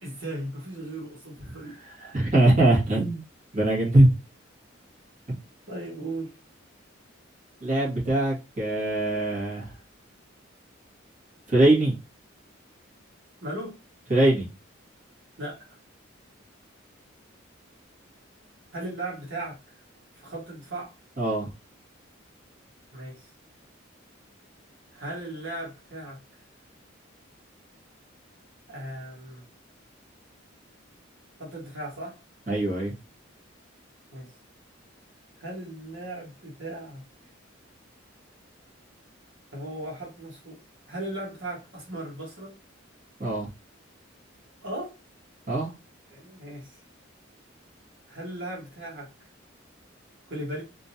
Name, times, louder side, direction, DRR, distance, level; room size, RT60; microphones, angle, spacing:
voice 1, 0.0-1.8 5.7-6.3 13.4-13.8 15.4-15.6 18.7-19.6 20.1-20.9 22.9-23.3 24.9-26.2 28.7-29.4 31.4-32.2 34.1-34.3 35.4-37.0 39.5-40.6 40.9-42.6 44.6-45.0 46.1-46.8 48.1-49.1 50.3-50.6, right 1 dB, 65° right, -4 dB, 1.4 m, -37 dB
voice 2, 2.0-3.2 3.5-4.1 5.3-5.4 7.6-9.7 11.5-12.0 14.1-14.5 21.2-21.5 32.5-32.9 43.2-43.5 45.5-45.7, right 1 dB, 40° right, -6 dB, 1.7 m, -22 dB
3.7 x 2.6 x 2.8 m, 0.27 s
head